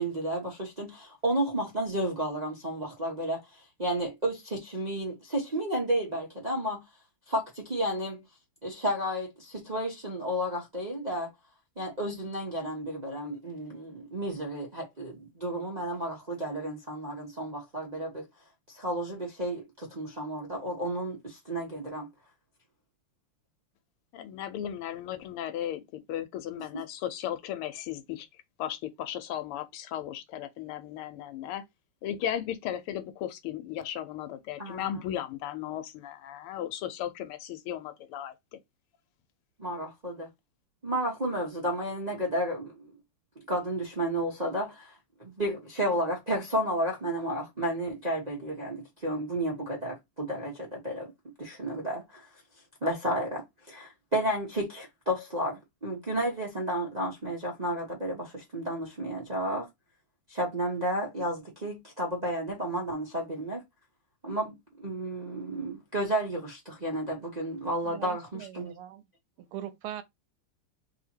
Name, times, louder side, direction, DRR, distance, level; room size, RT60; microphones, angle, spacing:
voice 1, 0.0-6.8 7.3-8.2 8.6-11.3 11.8-18.3 18.7-22.1 34.6-35.0 39.6-40.3 40.8-42.9 43.4-51.1 51.4-52.3 52.8-59.7 60.3-63.6 64.2-68.7, right 1 dB, 50° right, 0.4 m, -32 dB
voice 2, 24.1-28.3 28.6-31.6 32.0-38.3, left 11 dB, 90° left, 1.6 m, -36 dB
voice 3, 67.8-69.0 69.5-70.0, right 12 dB, 80° right, 1.5 m, -41 dB
3.4 x 2.9 x 4.3 m
omnidirectional pair, 2.4 m